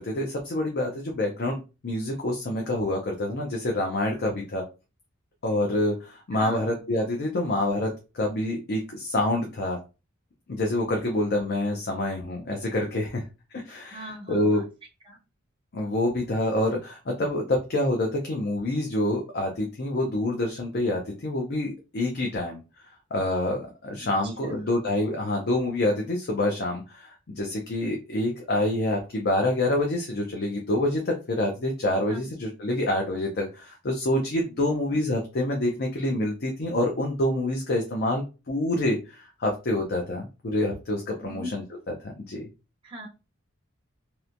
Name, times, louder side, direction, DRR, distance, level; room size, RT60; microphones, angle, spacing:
voice 1, 0.0-1.6 1.8-4.6 5.4-9.8 10.5-13.2 13.5-14.6 15.7-22.6 23.1-41.6 42.0-42.5, left 1 dB, 50° left, 1 dB, 0.5 m, -27 dB
voice 2, 6.3-6.7 13.9-14.6 15.0-15.2 24.2-24.7 32.1-32.3 34.7-35.0 41.2-41.6 42.8-43.1, equal, 25° right, 0 dB, 0.6 m, -40 dB
2.9 x 2.1 x 2.5 m, 0.30 s
head